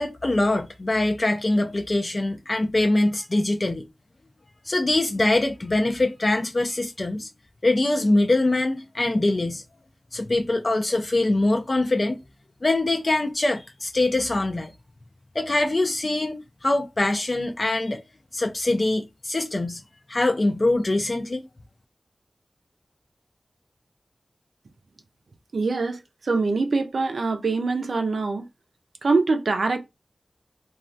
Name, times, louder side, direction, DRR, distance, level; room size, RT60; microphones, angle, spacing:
voice 1, 0.0-3.8 4.7-7.3 7.6-9.6 10.1-12.2 12.6-14.7 15.3-18.0 18.3-19.8 20.1-21.4, left 2 dB, 45° left, 0.4 m, -23 dB
voice 2, 25.5-28.5 29.0-29.8, right 3 dB, 85° right, 0.4 m, -24 dB
3.1 x 2.3 x 2.6 m
wide cardioid pair, 65°, 0 cm